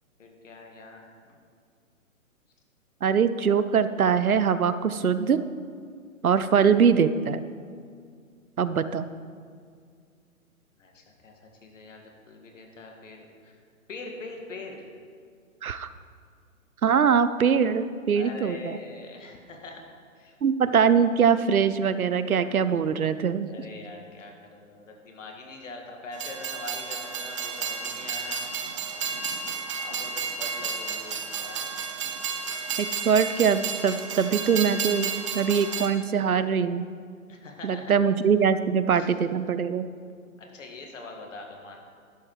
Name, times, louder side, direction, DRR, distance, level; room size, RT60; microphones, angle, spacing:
voice 1, 0.2-1.4 10.8-13.6 13.9-14.9 18.1-19.8 20.1-20.3 23.5-28.5 29.8-31.7 37.3-37.9 38.9-39.1 40.4-41.8, left 3 dB, 60° left, 2 dB, 2.1 m, -43 dB
voice 2, 3.0-5.4 6.2-7.4 8.6-9.1 15.6-15.9 16.8-18.8 20.4-23.5 32.8-36.9 37.6-39.9, right 7 dB, 85° right, 13 dB, 0.7 m, -23 dB
Train, 26.1-35.9, right 5 dB, 25° right, 0.5 m, -32 dB
12.0 x 7.5 x 4.8 m, 2.1 s
figure-of-eight pair, 130°, 42 cm